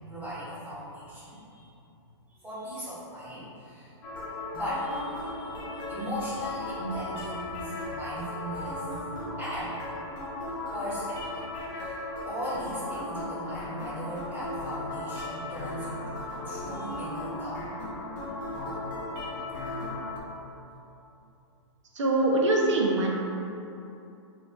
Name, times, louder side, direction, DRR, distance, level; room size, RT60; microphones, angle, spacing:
voice 1, 0.1-1.7 2.3-3.9 4.5-9.8 10.7-11.5 11.7-16.1 16.4-17.7, equal, 10° right, -13 dB, 1.2 m, -38 dB
sound 1, 4.0-20.2, left 2 dB, 45° left, 0.8 m, -36 dB
voice 2, 22.0-23.1, right 2 dB, 80° right, -1 dB, 0.7 m, -23 dB
5.6 x 2.5 x 2.5 m, 2.8 s
hypercardioid pair, 170°, 15 cm